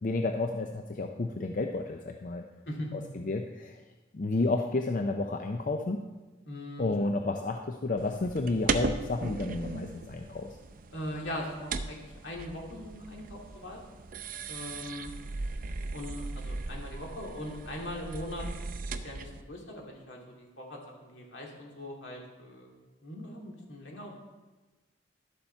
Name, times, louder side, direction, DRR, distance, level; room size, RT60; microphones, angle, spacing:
voice 1, 0.0-2.4 2.9-3.8 4.1-6.0 6.8-10.5, left 2 dB, 45° left, 4 dB, 0.5 m, -31 dB
voice 2, 6.5-6.9 10.9-13.8 14.5-15.1 15.9-18.5 18.9-22.7 23.0-24.2, left 1 dB, 75° left, -1 dB, 2.3 m, -40 dB
sound 1, 8.0-19.4, right 3 dB, 45° right, 0.5 m, -37 dB
12.0 x 7.1 x 4.4 m, 1.2 s
head